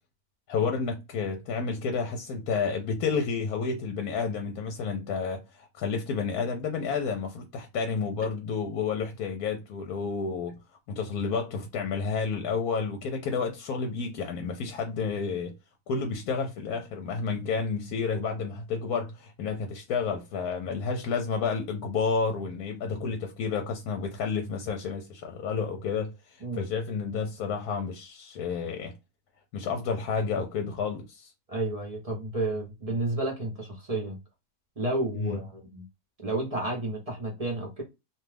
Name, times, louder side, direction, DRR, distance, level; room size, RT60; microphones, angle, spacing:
voice 1, 0.5-10.6 10.9-15.5 15.9-28.9 29.5-31.3 35.2-35.4, left 5 dB, 80° left, 1.1 m, -30 dB
voice 2, 31.5-34.2 34.8-35.8 36.2-37.8, right 2 dB, 35° right, 0.7 m, -31 dB
2.6 x 2.3 x 3.2 m
omnidirectional pair, 1.6 m